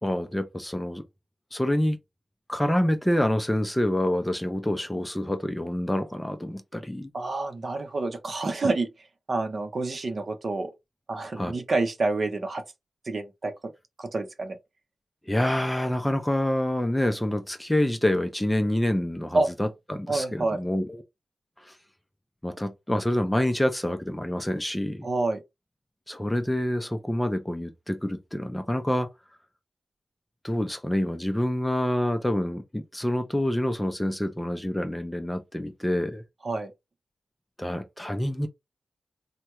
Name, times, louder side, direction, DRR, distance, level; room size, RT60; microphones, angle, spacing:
voice 1, 0.0-1.0 1.5-2.0 2.5-7.1 11.4-11.5 15.3-21.0 21.6-21.7 22.4-25.1 26.1-29.1 30.4-36.2 37.6-38.5, left 1 dB, 10° left, 0.5 m, -27 dB
voice 2, 7.1-8.9 9.3-10.7 11.1-12.6 13.0-13.7 14.0-14.6 19.3-19.5 20.1-20.6 25.0-25.4 36.4-36.7, right 3 dB, 50° right, 0.7 m, -28 dB
3.4 x 2.1 x 2.9 m
wide cardioid pair, 95°, 0 cm